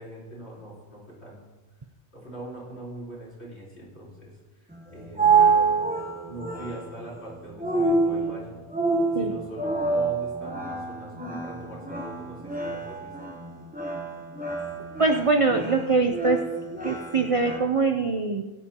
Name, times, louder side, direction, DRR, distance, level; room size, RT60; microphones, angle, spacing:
voice 1, 0.0-1.5 2.1-5.8 6.2-8.6 9.1-13.1, right 1 dB, 45° left, -7 dB, 4.4 m, -42 dB
sound 1, 4.7-17.6, right 4 dB, 5° right, 1.0 m, -27 dB
voice 2, 15.0-16.4 16.8-18.4, right 3 dB, 55° right, 5 dB, 0.3 m, -23 dB
20.5 x 8.4 x 2.9 m, 1.2 s
omnidirectional pair, 1.5 m